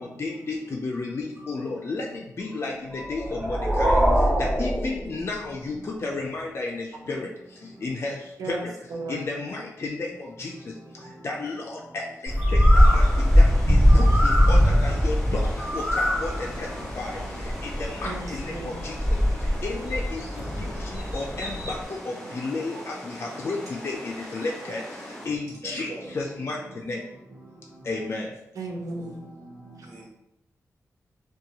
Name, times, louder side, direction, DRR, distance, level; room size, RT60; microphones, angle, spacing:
voice 1, 0.0-8.7 9.1-27.0 27.8-28.4, left 3 dB, 45° left, -2 dB, 0.4 m, -33 dB
voice 2, 2.0-2.5 2.9-3.1 4.3-4.6 10.4-10.6 10.9-11.1 13.1-13.4 14.1-14.2 14.6-14.9 15.8-17.9 18.6-19.8 22.7-22.8 23.6-23.7 25.6-26.8 27.3-27.8 29.4-30.1, right 1 dB, 70° right, -7 dB, 1.2 m, -46 dB
sound 1, 3.0-5.6, equal, 45° right, 1.3 m, -23 dB
voice 3, 8.4-9.3 18.0-18.9 28.5-29.3 29.8-29.9, right 2 dB, 90° right, 2 dB, 0.5 m, -35 dB
Bird, 12.3-21.8, equal, 25° right, 1.3 m, -21 dB
sound 2, 12.7-25.3, equal, 5° left, 0.7 m, -41 dB
2.8 x 2.2 x 2.7 m, 0.87 s
wide cardioid pair, 100°, 6 cm